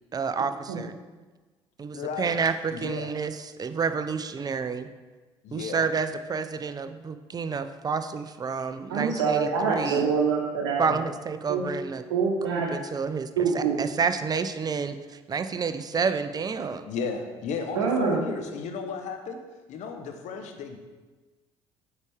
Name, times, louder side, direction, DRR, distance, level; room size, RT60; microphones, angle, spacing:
voice 1, 0.1-1.0 1.8-4.9 5.5-10.1 10.8-12.0 12.5-16.9, right 5 dB, 30° right, 10 dB, 0.5 m, -29 dB
voice 2, 1.9-2.4 2.7-3.1 5.4-5.8 16.9-19.4 19.7-20.8, left 5 dB, 55° left, 5 dB, 0.9 m, -34 dB
voice 3, 8.9-10.8 11.5-11.6 12.1-12.7 13.4-13.8 17.7-18.2, right 5 dB, 75° right, -1 dB, 0.8 m, -25 dB
8.1 x 4.8 x 3.5 m, 1.3 s
figure-of-eight pair, 55°, 14 cm